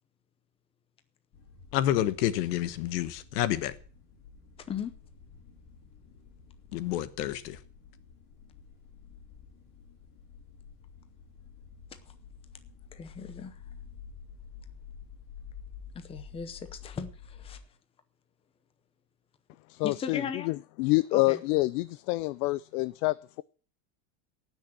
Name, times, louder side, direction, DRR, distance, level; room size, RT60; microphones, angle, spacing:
sound 1, 1.3-17.6, left 6 dB, 35° left, 4.1 m, -50 dB
voice 1, 1.7-3.7 6.7-7.6, left 12 dB, 90° left, 1.3 m, -29 dB
voice 2, 12.9-13.6 15.9-17.6 19.8-20.5 21.1-21.4, left 6 dB, 10° left, 0.7 m, -37 dB
voice 3, 19.7-23.4, left 21 dB, 75° left, 0.6 m, -27 dB
18.0 x 6.4 x 7.5 m
cardioid pair, 175°, 46 cm